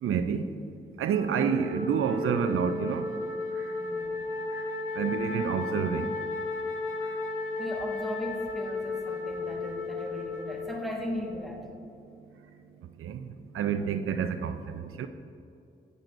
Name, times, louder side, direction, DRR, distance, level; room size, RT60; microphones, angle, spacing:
voice 1, 0.0-0.5 1.0-3.1 4.6-4.7 5.0-6.1 13.0-13.3 13.5-15.1, right 7 dB, 80° right, 9 dB, 0.4 m, -28 dB
Wind instrument woodwind instrument, 1.0-11.4, left 3 dB, 75° left, 0.9 m, -34 dB
voice 2, 3.8-4.3 7.6-11.7, equal, ahead, 0 dB, 1.6 m, -37 dB
9.2 x 8.8 x 2.6 m, 2.6 s
cardioid pair, 50°, 21 cm